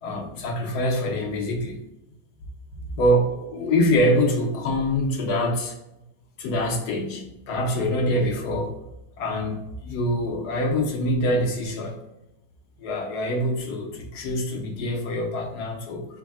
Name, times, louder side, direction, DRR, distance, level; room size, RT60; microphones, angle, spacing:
voice 1, 0.0-1.8 2.7-5.8 6.4-8.7 9.2-12.0 12.8-16.1, equal, 80° left, 2 dB, 1.3 m, -25 dB
4.4 x 2.1 x 4.6 m, 0.90 s
omnidirectional pair, 1.7 m